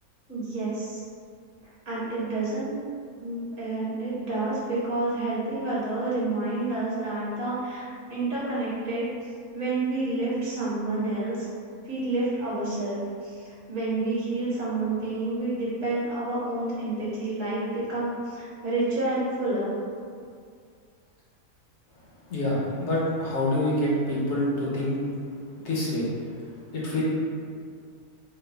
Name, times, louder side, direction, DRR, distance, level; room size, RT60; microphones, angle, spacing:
voice 1, 0.3-1.0 1.8-2.8 3.2-11.5 11.8-19.7, right 2 dB, 40° right, -10 dB, 1.1 m, -29 dB
voice 2, 22.2-25.0 25.6-27.0, left 1 dB, 60° left, -6 dB, 0.9 m, -27 dB
3.2 x 2.2 x 3.2 m, 2.2 s
omnidirectional pair, 1.6 m